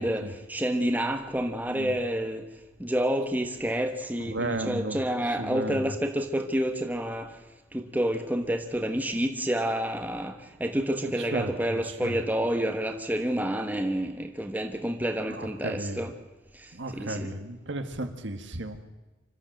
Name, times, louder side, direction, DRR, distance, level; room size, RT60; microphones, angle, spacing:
voice 1, 0.0-2.5 2.8-7.3 7.7-16.1 16.6-17.4, right 1 dB, 10° right, 5 dB, 1.3 m, -29 dB
voice 2, 4.2-5.0 5.4-5.9 11.2-12.2 15.3-16.1 16.7-18.8, right 1 dB, 65° right, 7 dB, 1.7 m, -34 dB
26.0 x 13.5 x 7.8 m, 1.1 s
head